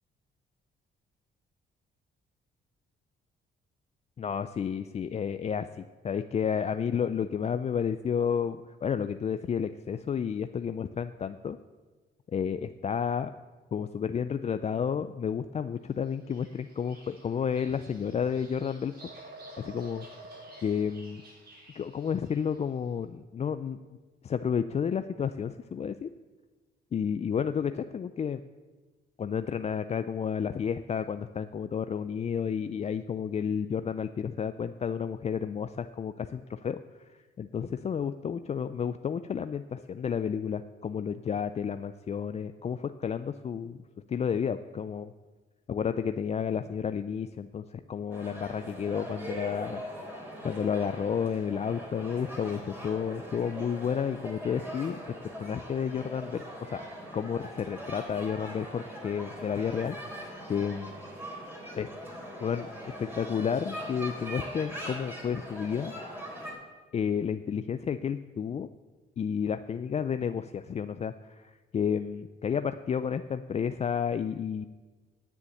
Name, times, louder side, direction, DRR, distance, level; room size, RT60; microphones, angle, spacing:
voice 1, 4.2-11.6 12.3-13.3 13.7-19.0 19.6-20.1 20.6-21.2 21.8-23.8 24.2-26.1 26.9-28.4 29.2-43.8 44.1-45.1 45.7-49.8 50.1-56.9 57.1-60.9 61.8-61.9 62.4-62.7 63.0-65.9 66.9-68.7 69.2-74.7, left 7 dB, 35° left, 10 dB, 0.4 m, -31 dB
Bird vocalization bird call bird song, 16.0-22.7, right 1 dB, 55° right, 4.3 m, -50 dB
sound 1, 48.1-66.5, equal, 10° right, 3.6 m, -41 dB
9.8 x 7.0 x 9.0 m, 1.3 s
cardioid pair, 90°, 20 cm